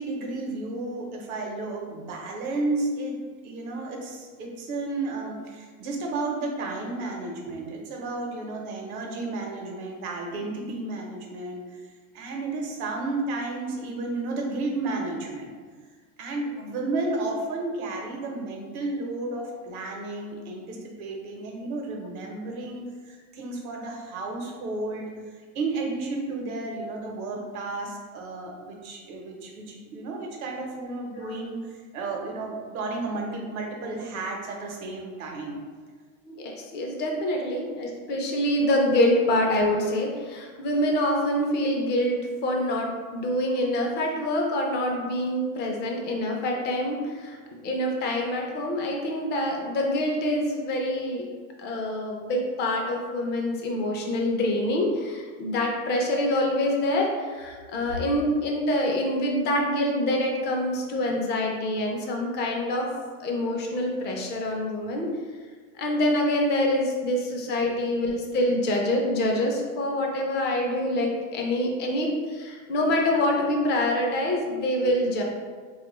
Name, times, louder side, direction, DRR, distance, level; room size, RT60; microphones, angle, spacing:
voice 1, 0.0-3.2 3.4-11.8 12.1-15.5 16.2-35.6, right 2 dB, 80° right, 1 dB, 0.8 m, -32 dB
voice 2, 36.3-47.4 47.6-51.3 51.6-62.9 63.2-65.1 65.8-75.2, left 1 dB, 25° left, 0 dB, 0.4 m, -26 dB
3.2 x 2.4 x 2.9 m, 1.5 s
supercardioid pair, 125°, 42 cm